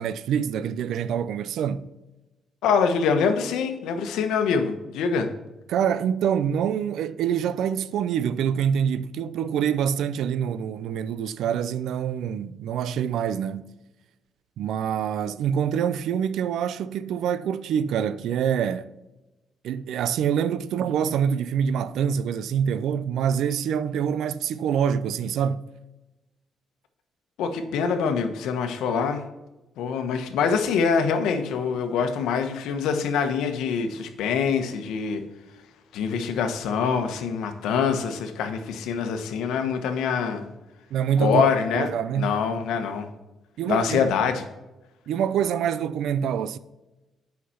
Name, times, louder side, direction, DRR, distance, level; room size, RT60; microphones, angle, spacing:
voice 1, 0.0-1.9 5.7-13.7 14.6-18.9 19.6-25.6 40.9-41.5 41.8-42.4 43.6-44.1 45.1-46.6, right 8 dB, 80° right, 0.5 m, -25 dB
voice 2, 2.6-5.3 27.4-29.2 29.8-35.2 35.9-40.4 41.2-41.9 42.1-43.1 43.7-44.4, left 6 dB, 85° left, 1.1 m, -25 dB
8.5 x 5.8 x 5.6 m
cardioid pair, 90°, 0 cm